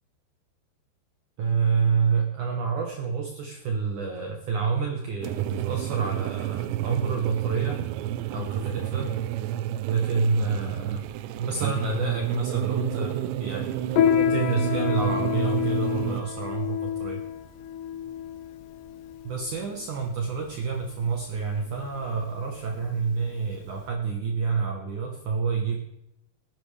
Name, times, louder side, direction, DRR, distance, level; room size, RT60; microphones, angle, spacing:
voice 1, 1.4-7.8 8.3-9.2 9.9-11.1 11.4-13.7 14.3-17.2 19.2-25.8, right 5 dB, 70° right, 1 dB, 2.0 m, -28 dB
sound 1, 5.2-16.2, right 12 dB, 90° right, 2.9 m, -30 dB
Piano, 13.9-23.9, left 9 dB, 80° left, 3.4 m, -29 dB
19.5 x 10.5 x 3.3 m, 0.83 s
omnidirectional pair, 5.0 m